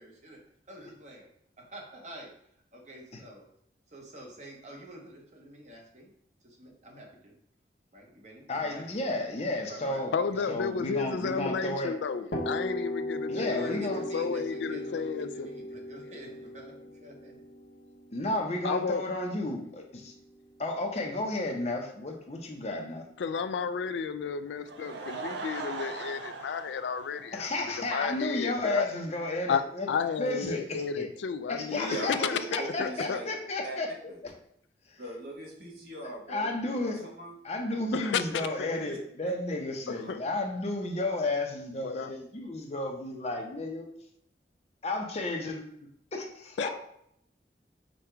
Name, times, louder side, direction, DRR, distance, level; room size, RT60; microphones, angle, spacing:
voice 1, 0.0-3.5 3.9-6.1 6.4-7.3 7.9-8.9 9.7-10.5 10.8-10.9 13.3-17.4, right 1 dB, 40° right, 0 dB, 1.0 m, -47 dB
voice 2, 8.5-10.1 10.5-11.9 13.3-14.0 18.1-20.1 20.6-23.1 27.3-29.9 30.2-31.1 31.5-34.3 34.9-35.0 36.3-37.0 37.4-43.9 44.8-45.6 46.1-46.7, left 2 dB, 40° left, 2 dB, 0.7 m, -32 dB
voice 3, 10.1-15.5 18.6-19.0 23.2-27.5 27.9-28.9 29.5-31.8 32.1-33.2 37.9-38.7 40.1-40.2 41.8-42.1 46.6-46.7, left 6 dB, 90° left, 12 dB, 0.3 m, -32 dB
sound 1, 12.3-20.0, left 1 dB, 70° left, 0.9 m, -37 dB
Laughter / Crowd, 24.5-27.9 28.3-28.4 28.9-29.0 29.2-29.3, right 4 dB, 85° right, 0.5 m, -40 dB
voice 4, 31.7-33.3 33.6-33.8 34.1-34.2 35.0-37.3 38.6-39.0 39.9-40.1, right 1 dB, 60° right, -2 dB, 1.2 m, -40 dB
5.2 x 2.3 x 4.4 m, 0.70 s
head